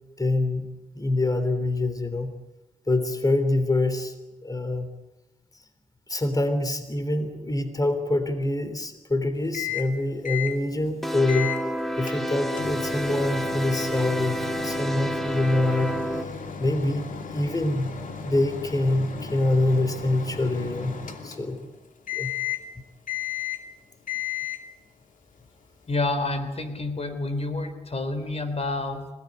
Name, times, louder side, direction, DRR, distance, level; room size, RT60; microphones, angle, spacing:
voice 1, 0.2-0.7 0.9-2.3 2.9-4.1 4.4-4.9 6.1-11.5 12.0-15.9 16.6-17.9 18.2-21.0 21.2-21.7 22.1-22.3, left 2 dB, 25° left, 9 dB, 3.2 m, -25 dB
Microwave oven, 9.5-9.9 10.2-10.6 11.3-11.6 12.1-21.7 22.1-22.7 23.1-23.7 24.1-24.7, left 8 dB, 85° left, 2.7 m, -35 dB
sound 1, 11.0-16.2, equal, ahead, 2.4 m, -29 dB
voice 2, 25.9-29.1, left 2 dB, 50° left, 9 dB, 3.5 m, -28 dB
26.0 x 18.5 x 9.7 m, 1.0 s
cardioid pair, 60°, 13 cm